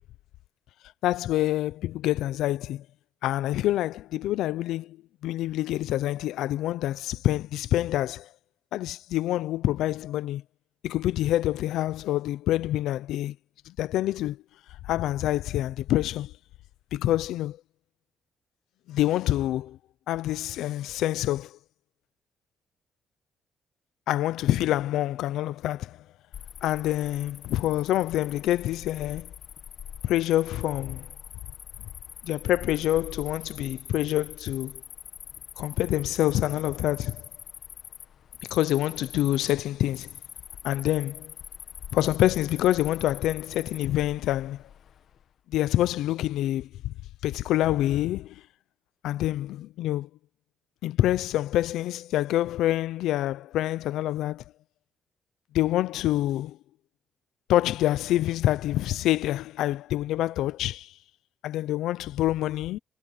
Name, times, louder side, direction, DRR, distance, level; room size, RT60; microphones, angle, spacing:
voice 1, 1.0-2.8 3.2-5.0 5.2-8.3 8.7-10.4 10.8-13.4 13.7-14.4 14.8-16.3 16.9-17.6 18.9-19.8 20.1-21.6 24.1-26.0 26.6-29.3 30.0-31.1 32.2-34.8 35.6-37.2 38.4-40.1 40.6-41.3 41.9-44.6 45.5-46.9 47.2-48.4 49.0-50.1 50.8-54.4 55.5-56.6 57.5-60.9 61.4-62.8, left 14 dB, 85° left, 0.6 m, -26 dB
Cricket, 26.3-45.2, left 9 dB, 65° left, 1.8 m, -44 dB
cardioid pair, 90°, 0 cm